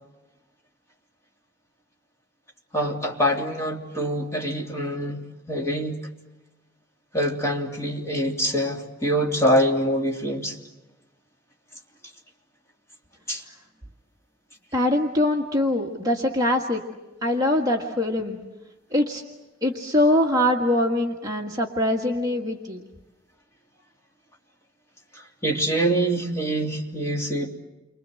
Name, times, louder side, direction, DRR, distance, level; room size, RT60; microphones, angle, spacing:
voice 1, 2.7-6.0 7.1-10.6 13.3-13.4 25.1-27.5, equal, 15° left, -1 dB, 3.1 m, -25 dB
voice 2, 14.7-16.8 17.2-18.4 18.9-19.2 19.6-22.8, left 1 dB, 20° right, 0 dB, 1.7 m, -23 dB
30.0 x 25.0 x 7.7 m, 1.1 s
head